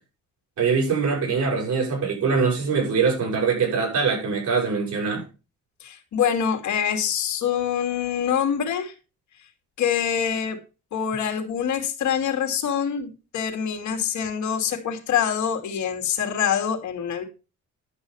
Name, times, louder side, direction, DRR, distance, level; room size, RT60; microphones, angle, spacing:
voice 1, 0.6-5.2, right 5 dB, 70° right, 7.3 m, -23 dB
voice 2, 5.8-8.9 9.8-10.6 10.9-17.2, left 8 dB, 70° left, 2.6 m, -25 dB
11.5 x 6.4 x 5.6 m
cardioid pair, 90°, 30 cm